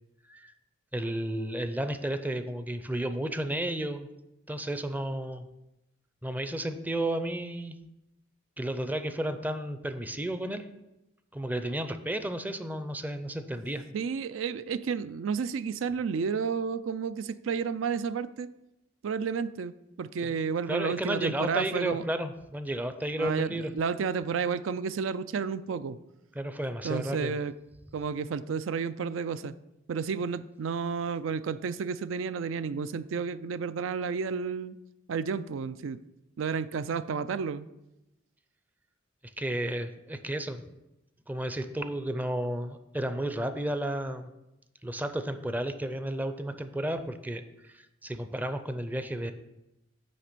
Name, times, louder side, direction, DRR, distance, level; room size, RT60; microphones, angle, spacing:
voice 1, 0.9-4.1 4.5-5.5 6.2-7.8 8.6-10.7 11.3-13.8 20.2-20.3 20.7-23.7 26.4-27.4 39.4-40.6 41.3-44.3 44.8-49.3, right 1 dB, 10° right, 9 dB, 0.5 m, -32 dB
voice 2, 13.9-18.5 19.0-22.0 23.2-26.0 26.8-27.5 27.9-29.5 29.9-34.8 35.1-36.0 36.4-37.7, right 6 dB, 75° right, 14 dB, 0.4 m, -31 dB
9.4 x 3.3 x 6.7 m, 0.92 s
head